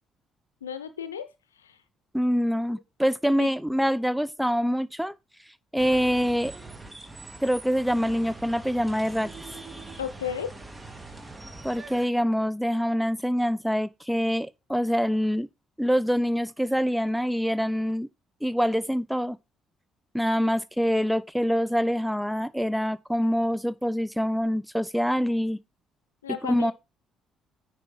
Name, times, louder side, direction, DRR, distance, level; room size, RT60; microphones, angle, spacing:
voice 1, 0.6-1.3 1.6-1.8 3.4-3.5 10.0-10.5 26.2-26.7, left 8 dB, 85° left, 0.7 m, -33 dB
voice 2, 2.1-5.1 5.7-6.5 7.4-9.3 11.6-15.5 15.8-18.1 18.4-19.4 20.1-25.6 26.4-26.7, equal, ahead, 0.6 m, -25 dB
sound 1, 5.8-12.1, right 2 dB, 20° right, 1.6 m, -43 dB
9.6 x 4.7 x 4.4 m
figure-of-eight pair, 50°, 0 cm